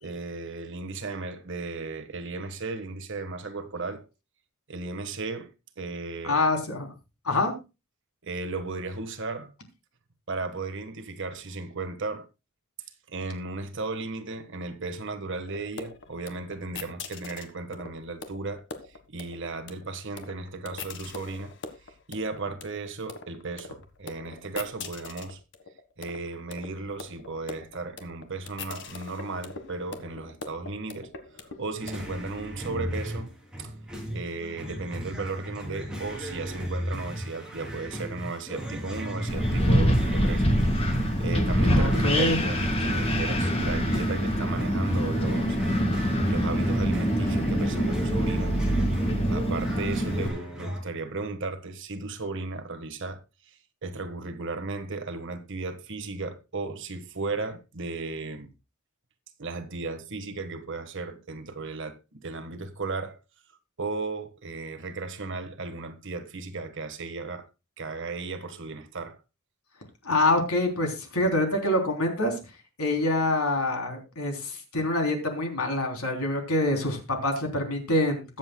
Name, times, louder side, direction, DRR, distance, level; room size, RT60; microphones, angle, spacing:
voice 1, 0.0-4.1 4.7-6.4 8.2-9.5 10.3-12.3 13.1-21.5 22.1-25.4 26.0-31.1 31.6-33.3 33.6-33.7 34.1-40.5 41.2-45.6 46.2-48.5 49.3-58.5 59.4-63.2 63.8-67.5 67.8-69.2, right 3 dB, 55° right, 1.5 m, -35 dB
voice 2, 6.2-6.9 7.3-7.5 41.7-42.4 70.0-72.4 72.8-78.4, left 1 dB, 80° left, 3.5 m, -26 dB
sound 1, 15.4-32.3, left 4 dB, 55° left, 1.5 m, -42 dB
sound 2, 31.8-50.8, equal, 5° right, 3.4 m, -35 dB
Wind, 39.3-50.3, equal, 25° left, 2.0 m, -25 dB
21.5 x 7.7 x 2.3 m
head